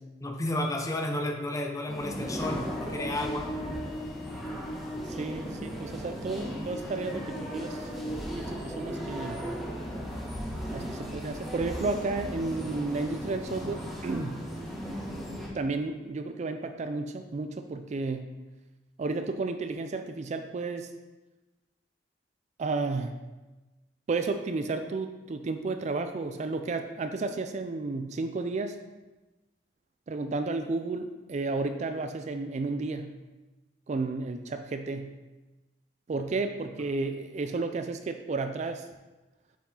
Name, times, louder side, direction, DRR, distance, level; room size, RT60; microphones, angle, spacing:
voice 1, 0.2-3.5, left 1 dB, 20° left, 3 dB, 0.7 m, -32 dB
sound 1, 1.9-15.5, equal, ahead, 1.9 m, -36 dB
voice 2, 5.1-7.9 8.3-9.4 10.7-14.4 15.5-18.3 19.0-20.9 22.6-23.2 24.1-28.8 30.1-33.2 33.9-35.1 36.1-38.9, right 3 dB, 40° right, 8 dB, 0.4 m, -32 dB
7.0 x 4.7 x 3.8 m, 1.1 s
head